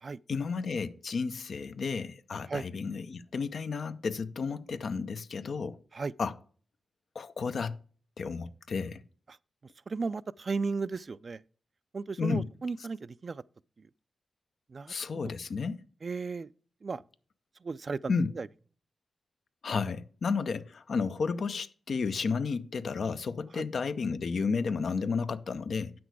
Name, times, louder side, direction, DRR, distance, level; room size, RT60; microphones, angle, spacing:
voice 1, 0.3-5.8 6.2-6.3 7.1-7.8 8.2-9.0 12.2-12.5 14.9-15.8 18.1-18.3 19.6-25.9, left 5 dB, 70° left, 0.6 m, -32 dB
voice 2, 9.9-11.4 11.9-13.4 13.8-13.9 14.7-14.9 16.0-16.5 16.8-17.0 17.6-18.5 23.5-23.6, right 4 dB, 55° right, 0.3 m, -35 dB
8.1 x 6.1 x 4.7 m
cardioid pair, 45°, 0 cm